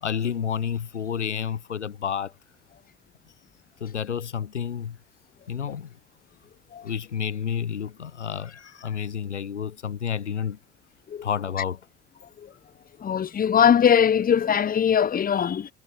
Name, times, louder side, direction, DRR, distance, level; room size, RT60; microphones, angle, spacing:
voice 1, 0.0-2.3 3.8-5.0 5.5-5.9 6.8-10.6 11.2-11.8, left 8 dB, 90° left, 0.8 m, -30 dB
voice 2, 13.0-15.7, left 8 dB, 25° left, 1.0 m, -20 dB
figure-of-eight pair, 65°, 34 cm